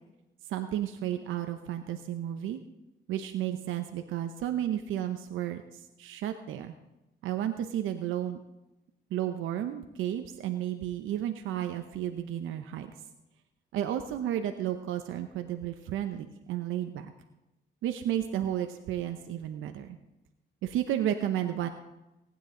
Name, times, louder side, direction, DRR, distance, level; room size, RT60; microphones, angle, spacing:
voice 1, 0.5-2.6 3.1-6.7 7.2-8.4 9.1-12.9 13.7-17.1 17.8-20.0 20.6-21.7, right 11 dB, 85° right, 7 dB, 0.8 m, -32 dB
18.5 x 9.7 x 3.8 m, 0.97 s
cardioid pair, 90°, 20 cm